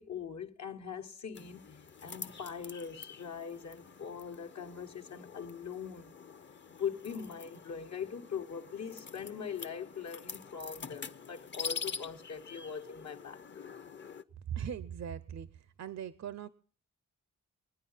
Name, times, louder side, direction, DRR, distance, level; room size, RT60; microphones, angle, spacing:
voice 1, 0.0-1.7 2.0-6.2 6.8-13.7, left 7 dB, 70° left, 1.1 m, -41 dB
sound 1, 1.4-14.2, left 6 dB, 40° left, 0.7 m, -46 dB
voice 2, 14.5-16.5, right 9 dB, 65° right, 0.6 m, -40 dB
22.5 x 9.5 x 5.5 m
wide cardioid pair, 85°, 29 cm